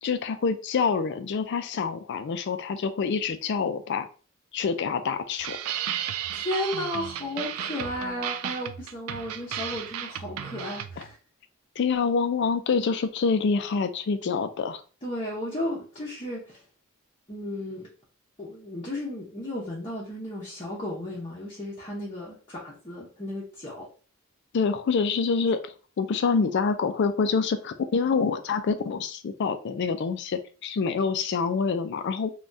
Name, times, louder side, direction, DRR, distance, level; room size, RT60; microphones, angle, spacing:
voice 1, 0.0-4.1 4.5-5.6 11.0-11.1 11.8-14.8 24.5-32.4, left 5 dB, 50° left, 9 dB, 0.3 m, -26 dB
sound 1, 5.4-11.1, right 10 dB, 75° right, 0.3 m, -34 dB
voice 2, 6.3-11.1 15.0-16.6 17.3-17.9 18.4-23.9, left 1 dB, 25° left, -5 dB, 0.7 m, -34 dB
3.3 x 2.3 x 2.5 m, 0.38 s
head